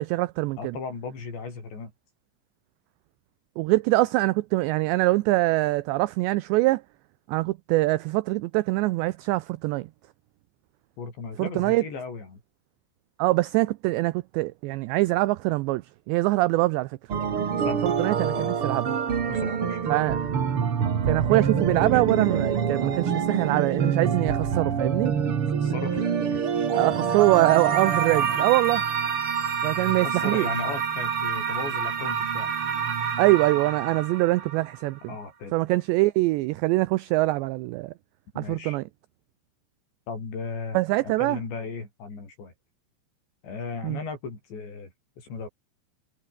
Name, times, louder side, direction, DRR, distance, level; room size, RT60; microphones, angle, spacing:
voice 1, 0.0-0.8 3.6-6.8 7.3-9.9 11.4-11.8 13.2-15.8 16.1-17.0 17.8-19.0 19.9-20.2 21.1-25.1 26.7-28.8 29.6-30.5 33.2-35.0 35.5-37.9 38.4-38.8 40.7-41.4 43.8-44.0, right 19 dB, 85° right, 2.5 m, -23 dB
voice 2, 0.6-1.9 11.0-12.4 17.6-17.9 18.3-18.6 19.3-19.9 25.3-26.4 29.9-32.5 35.1-35.6 38.3-38.8 40.1-42.5 43.4-44.9 45.2-45.5, left 4 dB, 60° left, 10.0 m, -36 dB
sound 1, 17.1-34.8, right 7 dB, 45° right, 1.9 m, -26 dB
omnidirectional pair, 5.8 m